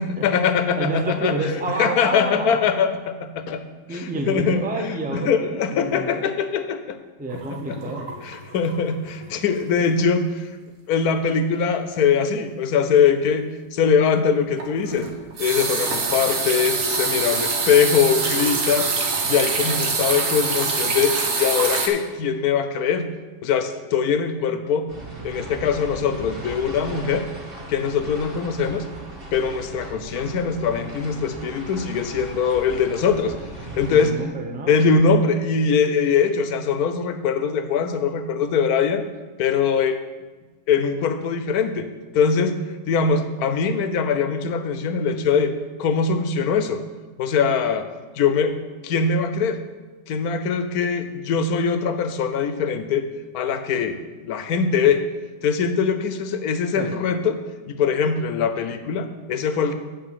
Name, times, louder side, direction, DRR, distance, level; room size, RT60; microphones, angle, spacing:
voice 1, 0.0-1.5 1.8-3.6 3.9-4.6 5.1-7.0 7.5-7.8 8.2-10.5 10.9-13.4 13.7-15.1 15.4-18.9 19.2-23.1 23.4-24.9 25.2-27.3 27.7-28.9 29.3-33.3 33.8-34.2 34.7-39.0 39.4-40.0 40.7-41.9 42.1-42.6 42.9-45.5 45.8-46.8 47.2-47.9 48.2-48.6 48.8-49.6 50.1-53.1 53.3-55.0 55.4-57.4 57.7-59.7, left 6 dB, 70° left, 9 dB, 1.1 m, -22 dB
voice 2, 0.8-2.6 3.9-6.3 7.2-8.1 33.8-35.0 56.7-57.0, right 2 dB, 10° right, 3 dB, 0.5 m, -29 dB
sound 1, 7.3-8.9 9.2-9.5 9.9-10.0 14.6-21.9, right 4 dB, 55° right, 1.3 m, -25 dB
sound 2, 24.9-34.1, right 2 dB, 35° right, 2.5 m, -37 dB
7.9 x 5.7 x 6.8 m, 1.2 s
omnidirectional pair, 1.8 m